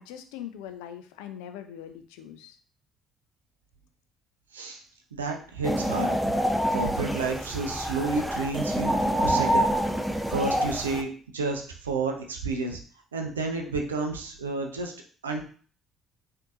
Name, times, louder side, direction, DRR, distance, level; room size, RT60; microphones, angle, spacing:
voice 1, 0.0-2.6, left 10 dB, 70° left, 8 dB, 0.4 m, -41 dB
voice 2, 5.1-6.4 6.7-9.7 10.3-12.8 13.1-14.9 15.2-15.5, right 3 dB, 80° right, 3 dB, 0.4 m, -31 dB
sound 1, 5.6-11.0, equal, 5° right, 0.4 m, -26 dB
3.7 x 2.7 x 2.4 m, 0.43 s
figure-of-eight pair, 50°, 0 cm